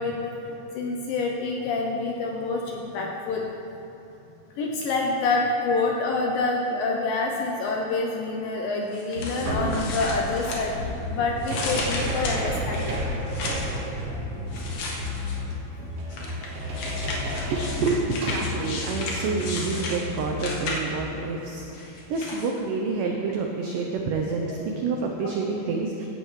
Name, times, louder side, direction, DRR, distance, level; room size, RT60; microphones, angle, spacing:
voice 1, 0.0-3.5 4.6-10.7 11.1-13.1 25.2-25.3, left 3 dB, 75° left, 0 dB, 2.1 m, -27 dB
sound 1, 8.8-8.9 9.2-21.0, equal, 60° right, 1.7 m, -31 dB
sound 2, 8.9-11.0 11.4-13.8 14.5-15.5 16.1-21.1 21.7-22.5, left 2 dB, 60° left, 2.1 m, -34 dB
voice 2, 17.5-26.1, right 4 dB, 85° right, 1 dB, 1.9 m, -28 dB
16.0 x 11.0 x 3.2 m, 2.9 s
omnidirectional pair, 4.8 m